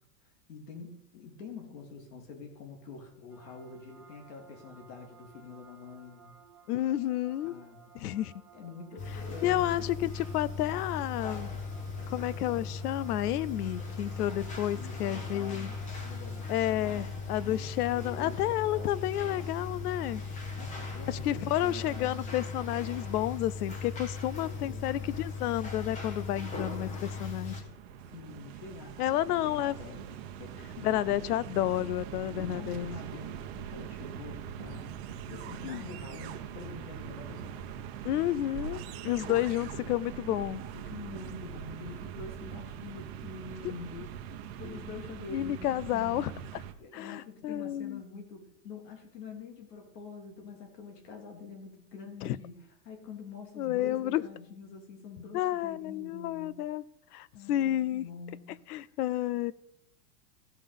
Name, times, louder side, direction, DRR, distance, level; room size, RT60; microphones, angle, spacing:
voice 1, 0.2-6.3 7.4-8.2 8.5-9.8 14.7-17.1 17.4-18.6 20.6-22.4 24.4-25.2 28.0-31.4 32.4-37.6 39.2-39.9 40.7-46.5 46.8-56.5 57.3-58.6, left 4 dB, 90° left, 3.3 m, -46 dB
sound 1, 3.3-16.8, right 6 dB, 5° right, 1.3 m, -58 dB
voice 2, 6.7-7.6 7.9-8.3 9.4-11.5 12.1-15.7 16.5-20.2 21.1-27.6 29.0-29.7 30.8-32.9 35.6-35.8 38.0-40.6 45.3-46.3 46.9-48.0 52.2-52.4 53.6-54.2 55.3-56.8 57.1-58.0 58.7-59.5, left 13 dB, 70° left, 0.6 m, -31 dB
sound 2, 9.0-27.6, left 4 dB, 15° left, 1.0 m, -38 dB
sound 3, 27.0-46.7, right 9 dB, 40° right, 0.9 m, -42 dB
15.0 x 5.7 x 5.3 m
supercardioid pair, 170°, 48 cm